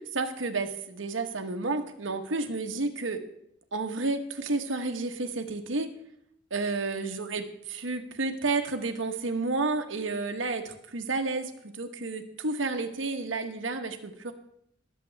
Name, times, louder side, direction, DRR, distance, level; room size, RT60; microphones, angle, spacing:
voice 1, 0.1-3.2 3.7-5.9 6.5-14.3, right 3 dB, 80° right, 5 dB, 1.2 m, -31 dB
20.0 x 7.6 x 3.4 m, 0.72 s
head